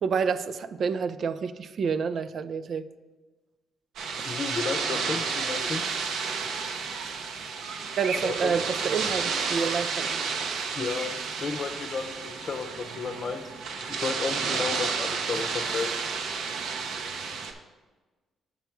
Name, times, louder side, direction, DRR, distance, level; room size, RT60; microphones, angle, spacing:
voice 1, 0.0-2.9 8.0-10.2, right 6 dB, 55° right, 12 dB, 0.4 m, -28 dB
sound 1, 4.0-17.5, right 5 dB, 80° right, 0.8 m, -31 dB
voice 2, 4.2-5.8 8.2-8.5 10.8-11.1 11.4-15.9, left 5 dB, 50° left, 8 dB, 0.7 m, -33 dB
7.0 x 5.8 x 4.6 m, 1.2 s
cardioid pair, 90°, 0 cm